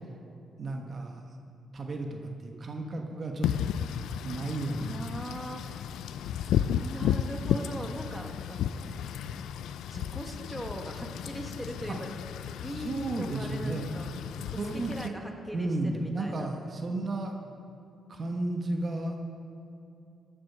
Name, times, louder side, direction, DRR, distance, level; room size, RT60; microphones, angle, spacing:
voice 1, 0.6-1.2 1.7-2.2 2.4-3.6 4.2-4.9 12.8-13.9 14.6-15.1 15.5-17.3 18.1-19.2, right 2 dB, 45° right, 3 dB, 1.2 m, -33 dB
Wind / Rain, 3.4-15.1, left 9 dB, 85° left, 0.4 m, -33 dB
voice 2, 4.8-5.9 6.8-8.6 9.9-12.1 12.6-14.1 14.5-16.5, right 1 dB, 5° right, 3 dB, 1.5 m, -40 dB
15.5 x 7.5 x 5.6 m, 2.7 s
cardioid pair, 75°, 0 cm